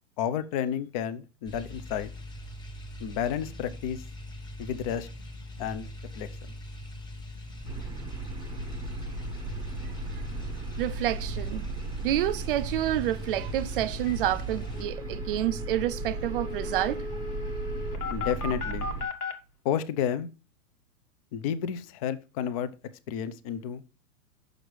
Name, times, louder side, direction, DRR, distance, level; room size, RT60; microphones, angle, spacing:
voice 1, 0.2-2.1 3.0-4.0 4.6-5.1 5.6-6.6 18.1-18.9 19.6-20.3 21.3-22.7 23.1-23.8, left 9 dB, 25° left, 0.4 m, -31 dB
sound 1, 1.5-14.8, left 1 dB, 10° left, 1.0 m, -42 dB
sound 2, 7.6-19.1, right 3 dB, 10° right, 0.7 m, -36 dB
voice 2, 10.8-11.6 12.0-17.0, right 13 dB, 40° right, 0.4 m, -29 dB
sound 3, 14.1-14.2 14.4-14.5 14.7-19.3, left 3 dB, 80° left, 1.6 m, -37 dB
6.4 x 6.2 x 3.2 m
hypercardioid pair, 135°, 45 cm